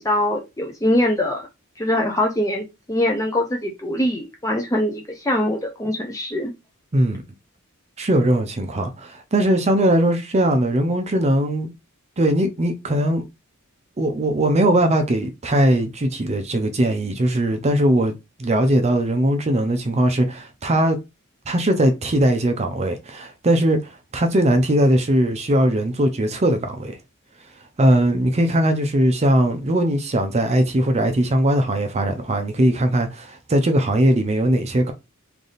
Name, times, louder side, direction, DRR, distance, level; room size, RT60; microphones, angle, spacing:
voice 1, 0.0-1.4 1.8-6.5, left 1 dB, 15° left, 0.5 m, -23 dB
voice 2, 8.0-11.7 12.2-13.3 14.0-18.1 18.4-21.0 21.5-27.0 27.8-34.9, right 1 dB, 30° right, 0.5 m, -20 dB
3.3 x 2.6 x 3.9 m
head